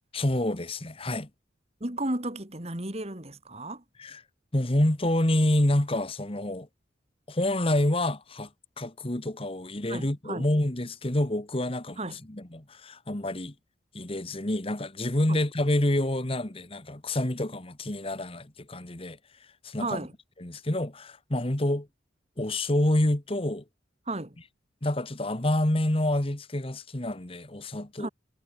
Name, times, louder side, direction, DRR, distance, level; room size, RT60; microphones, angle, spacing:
voice 1, 0.1-1.3 4.0-4.2 4.5-6.7 7.3-8.5 8.8-12.0 12.3-13.5 13.9-19.2 19.6-20.0 20.4-21.9 22.4-23.6 24.8-28.1, left 1 dB, 30° left, 1.5 m, -27 dB
voice 2, 1.8-3.8 9.9-10.4 12.0-12.2 15.3-15.4 19.8-20.1 24.1-24.4 28.0-28.1, right 2 dB, 35° right, 2.9 m, -33 dB
head